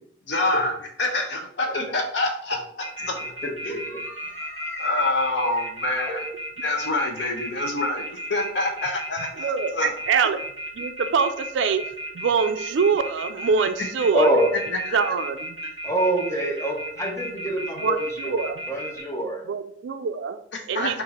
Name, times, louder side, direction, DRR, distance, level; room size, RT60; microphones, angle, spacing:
voice 1, 0.3-3.2 3.6-3.8 4.8-6.2 6.6-9.9 14.9-15.0 20.5-21.0, left 2 dB, 65° left, 3 dB, 0.8 m, -26 dB
sound 1, 2.8-19.0, right 1 dB, 25° right, 1.7 m, -34 dB
voice 2, 3.4-4.9 6.0-6.2 14.1-14.5 15.8-19.4, right 1 dB, 15° left, -1 dB, 0.7 m, -26 dB
voice 3, 9.4-10.4 10.8-11.8 12.1-14.3 14.9-15.6 17.8-18.6 19.5-20.4 20.7-21.0, right 5 dB, 70° right, 10 dB, 0.3 m, -24 dB
4.0 x 2.6 x 4.2 m, 0.70 s
head